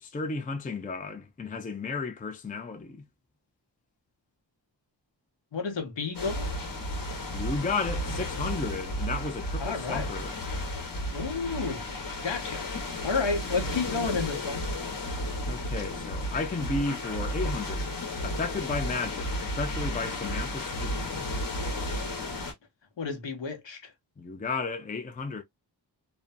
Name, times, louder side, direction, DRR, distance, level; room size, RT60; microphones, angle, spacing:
voice 1, 0.0-3.0 7.3-10.4 15.5-17.9 18.2-21.3 24.2-25.4, left 4 dB, 20° left, 0.4 m, -33 dB
voice 2, 5.5-6.5 9.6-10.1 11.1-11.8 12.2-12.7 13.0-14.6 23.0-23.9, left 4 dB, 75° left, 1.0 m, -31 dB
sound 1, 6.1-22.5, left 1 dB, 45° left, 1.1 m, -33 dB
2.6 x 2.2 x 2.5 m
wide cardioid pair, 130°, 45 cm